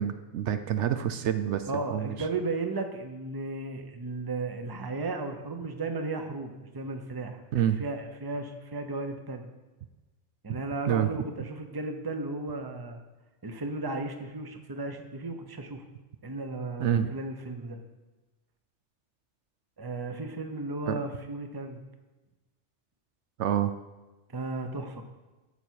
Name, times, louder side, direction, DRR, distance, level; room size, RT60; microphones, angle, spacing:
voice 1, 0.0-2.1 7.5-7.8 10.5-10.6 10.9-11.1 16.8-17.1 20.9-21.0 23.4-23.7, right 10 dB, 75° right, 10 dB, 0.9 m, -27 dB
voice 2, 1.7-9.5 10.4-13.0 13.4-15.8 16.2-17.8 19.8-21.8 24.3-25.0, right 2 dB, 20° right, 6 dB, 0.8 m, -35 dB
12.5 x 6.9 x 4.6 m, 1.1 s
omnidirectional pair, 1.2 m